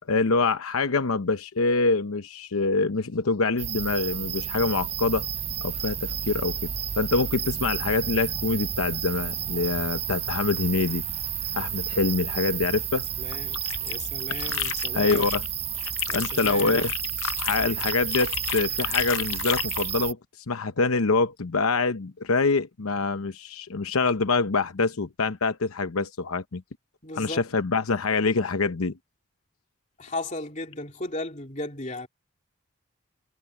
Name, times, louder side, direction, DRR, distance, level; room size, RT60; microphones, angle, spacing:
voice 1, 0.1-5.3 5.6-6.7 7.0-11.0 11.5-13.1 14.5-14.6 14.9-15.4 16.1-16.9 17.4-20.2 20.5-26.6 27.1-28.9, left 3 dB, 90° left, 0.9 m, -25 dB
sound 1, 3.6-20.1, right 9 dB, 30° right, 0.6 m, -31 dB
voice 2, 13.2-15.3 16.1-16.9 17.5-17.8 27.0-27.4 30.0-32.1, left 2 dB, 35° left, 3.2 m, -36 dB
sound 2, 13.3-15.5 15.7-19.9, left 12 dB, 70° left, 0.6 m, -32 dB
head